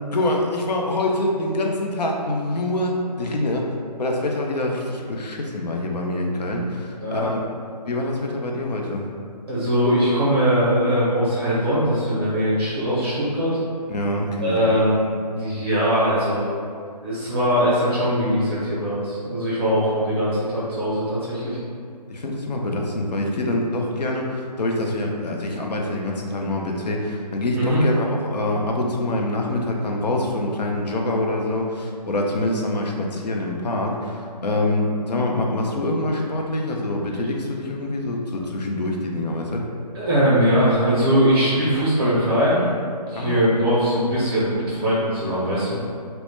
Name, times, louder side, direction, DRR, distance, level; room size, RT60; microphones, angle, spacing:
voice 1, 0.1-9.1 13.9-14.7 22.1-39.6 43.2-43.4, left 1 dB, 75° left, 1 dB, 0.5 m, -25 dB
voice 2, 7.0-7.3 9.5-13.6 14.4-16.5 17.0-21.6 27.5-27.8 39.9-42.7 43.1-45.8, equal, 35° right, -8 dB, 0.5 m, -21 dB
2.1 x 2.0 x 3.1 m, 2.3 s
figure-of-eight pair, 150°, 21 cm